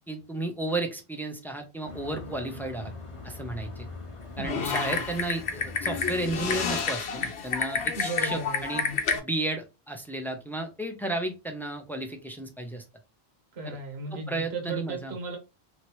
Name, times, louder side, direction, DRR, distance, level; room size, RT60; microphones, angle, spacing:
voice 1, 0.1-2.9 3.2-3.9 4.4-8.8 9.2-12.8 13.6-13.8 14.1-15.1, right 2 dB, 5° left, 0.4 m, -33 dB
sound 1, 1.8-6.8, left 3 dB, 35° left, 0.8 m, -42 dB
Typing, 4.4-9.2, left 5 dB, 80° left, 1.0 m, -29 dB
voice 2, 4.4-5.0 7.9-9.0 13.5-15.4, right 3 dB, 75° right, 1.2 m, -36 dB
3.0 x 2.9 x 2.9 m
omnidirectional pair, 1.1 m